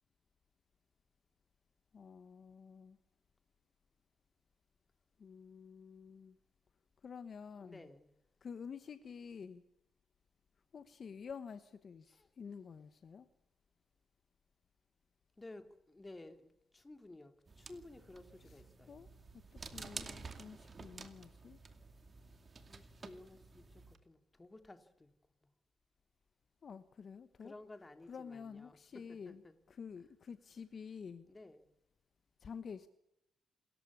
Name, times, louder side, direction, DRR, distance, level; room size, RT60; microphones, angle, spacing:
voice 1, 1.9-3.0 5.2-6.4 7.0-7.9 8.4-9.6 10.7-13.3 18.4-18.6 18.9-19.1 19.3-21.6 26.6-27.5 28.1-29.4 29.7-31.3 32.4-32.9, left 6 dB, 45° left, 1.2 m, -49 dB
voice 2, 7.6-8.1 12.1-12.3 15.4-18.9 22.7-25.1 27.4-29.5 31.2-31.7, left 2 dB, 15° left, 2.6 m, -55 dB
sound 1, 17.5-24.0, right 4 dB, 30° right, 2.4 m, -51 dB
27.5 x 14.5 x 9.8 m
cardioid pair, 110°, 0 cm